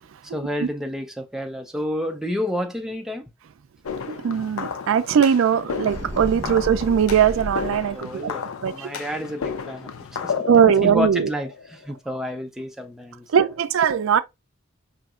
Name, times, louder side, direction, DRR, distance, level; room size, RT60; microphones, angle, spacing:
voice 1, 0.2-3.2 7.8-8.4 8.7-10.5 10.8-13.5, left 1 dB, ahead, 0.3 m, -30 dB
sound 1, 3.8-12.0, left 6 dB, 90° left, 0.5 m, -33 dB
voice 2, 4.1-8.3 8.6-8.9 10.5-11.3 13.3-14.2, right 8 dB, 75° right, 0.3 m, -20 dB
sound 2, 5.8-8.0, right 1 dB, 30° right, 1.0 m, -33 dB
5.0 x 2.7 x 2.4 m
head